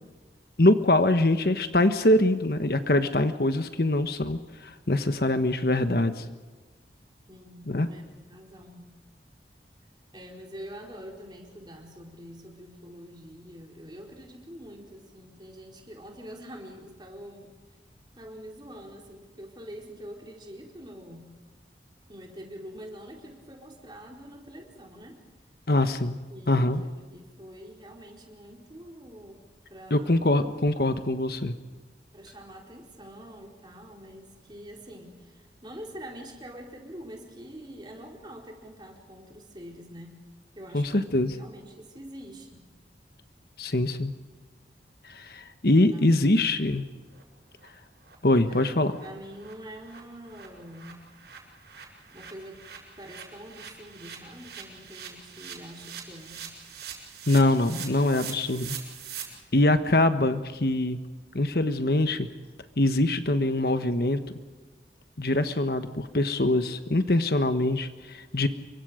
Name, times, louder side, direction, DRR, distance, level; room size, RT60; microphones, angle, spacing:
voice 1, 0.6-6.2 7.7-7.9 25.7-26.2 26.5-26.8 29.9-31.6 40.7-41.3 43.6-44.1 45.0-46.8 48.2-48.9 57.3-58.8 59.5-61.0 61.3-62.3 62.8-64.2 65.2-68.5, left 1 dB, 60° left, 9 dB, 1.3 m, -23 dB
voice 2, 7.3-8.9 10.1-17.5 18.2-21.3 22.1-25.2 26.3-29.4 29.7-30.5 32.1-40.2 40.5-42.7 45.9-46.5 48.5-48.6 49.0-51.0 52.1-52.6 53.0-56.5, equal, 25° right, 0 dB, 4.4 m, -45 dB
sound 1, 46.3-46.4 46.7-46.8 47.1-47.2 47.6-47.7 48.0-48.2 48.5-48.6 48.9-49.1 49.3-59.2, right 8 dB, 70° right, 7.1 m, -43 dB
28.5 x 24.0 x 5.1 m, 1.3 s
head